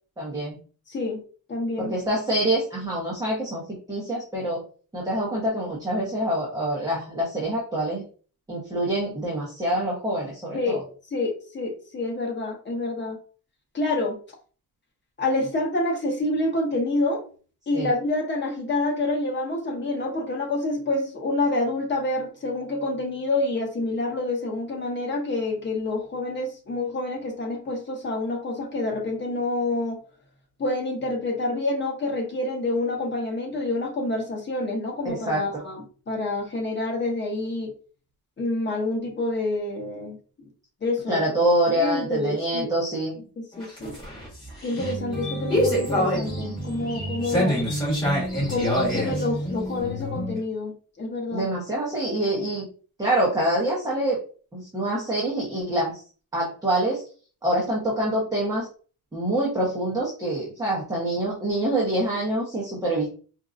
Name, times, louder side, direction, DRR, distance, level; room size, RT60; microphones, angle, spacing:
voice 1, 0.2-0.6 1.8-3.6 3.9-4.6 4.9-8.0 8.5-10.8 17.7-17.9 35.0-35.4 41.1-43.1 51.3-52.7 53.0-54.2 54.5-56.0 56.3-57.0 57.4-58.7 59.1-63.1, right 1 dB, 10° right, -5 dB, 0.9 m, -25 dB
voice 2, 0.9-1.2 1.5-2.0 10.5-10.8 11.1-13.2 13.7-14.2 15.2-17.2 17.7-30.0 30.6-37.7 38.4-40.2 40.8-41.2 41.8-42.7 43.2-44.0 44.6-47.6 48.5-51.5, left 2 dB, 30° left, 0 dB, 1.0 m, -27 dB
sound 1, 43.5-50.4, equal, 10° left, 1.8 m, -26 dB
4.5 x 2.6 x 2.4 m, 0.39 s
cardioid pair, 160°, 39 cm